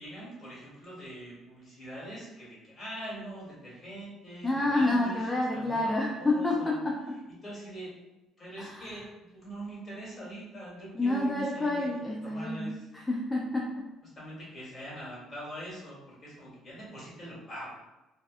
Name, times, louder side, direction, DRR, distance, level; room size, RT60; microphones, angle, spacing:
voice 1, 0.0-5.2 5.5-6.8 7.4-7.9 8.4-12.9 14.2-17.7, right 1 dB, 30° left, -6 dB, 1.5 m, -43 dB
voice 2, 4.4-7.2 8.6-9.0 10.9-13.9, left 2 dB, 15° left, -2 dB, 0.4 m, -29 dB
2.6 x 2.1 x 2.4 m, 1.0 s
cardioid pair, 95°, 0 cm